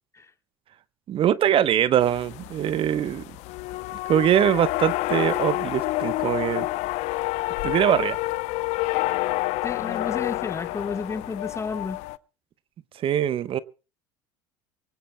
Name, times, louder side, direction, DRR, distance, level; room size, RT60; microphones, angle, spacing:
voice 1, 1.1-3.2 4.1-6.7 7.6-8.2 13.0-13.6, right 10 dB, 45° right, 0.9 m, -22 dB
sound 1, 2.0-12.2, left 19 dB, 65° left, 0.7 m, -28 dB
voice 2, 9.6-12.0, left 4 dB, 25° left, 1.3 m, -32 dB
24.5 x 18.0 x 2.2 m
supercardioid pair, 90°, 12 cm